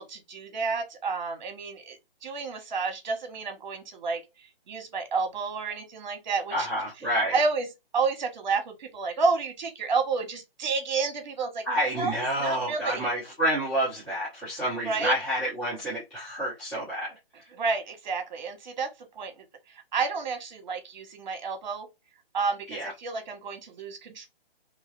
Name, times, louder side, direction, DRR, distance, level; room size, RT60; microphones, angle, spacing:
voice 1, 0.0-6.7 7.3-7.7 7.9-11.6 12.0-12.1 12.4-13.0 14.8-15.1 17.5-19.4 19.9-21.9 22.3-24.3, right 4 dB, 50° right, 1.1 m, -30 dB
voice 2, 6.5-7.4 11.6-17.1 22.7-22.9, equal, 5° left, 0.5 m, -29 dB
2.8 x 2.3 x 3.0 m
hypercardioid pair, 155°, 30 cm